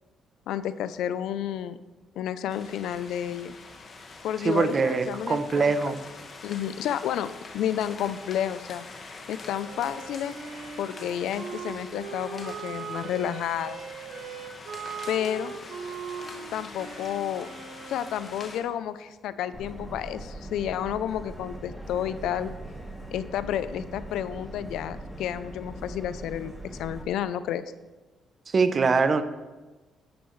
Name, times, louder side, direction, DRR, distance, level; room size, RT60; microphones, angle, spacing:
voice 1, 0.5-1.8 2.2-3.6 4.2-5.9 6.4-8.9 9.3-10.3 10.8-13.8 15.1-15.6 16.5-17.5 17.9-22.5 23.1-26.5 26.8-27.6, left 10 dB, 85° left, 14 dB, 0.5 m, -31 dB
sound 1, 2.5-18.6, left 3 dB, 45° left, 1.6 m, -45 dB
voice 2, 4.4-6.0 28.5-29.2, right 4 dB, 40° right, 11 dB, 0.8 m, -23 dB
Wind instrument woodwind instrument, 9.6-18.5, right 6 dB, 75° right, 1.6 m, -40 dB
Subway metro underground, 19.5-27.0, right 1 dB, ahead, 1.4 m, -41 dB
11.0 x 10.0 x 3.2 m, 1.2 s
cardioid pair, 90°, 0 cm